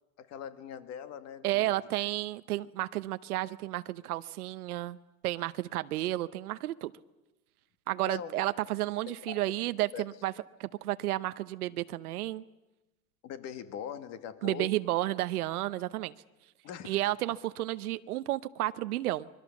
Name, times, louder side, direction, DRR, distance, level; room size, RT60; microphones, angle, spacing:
voice 1, 0.2-1.7 8.1-8.3 9.1-9.4 9.9-10.0 13.2-14.7 16.6-17.0, left 9 dB, 35° left, 10 dB, 1.9 m, -41 dB
voice 2, 1.4-5.0 5.2-6.9 7.9-10.3 10.6-12.4 14.4-16.1 16.8-19.3, right 16 dB, 90° right, 13 dB, 0.9 m, -32 dB
26.0 x 22.5 x 7.2 m, 1.1 s
supercardioid pair, 140°, 43 cm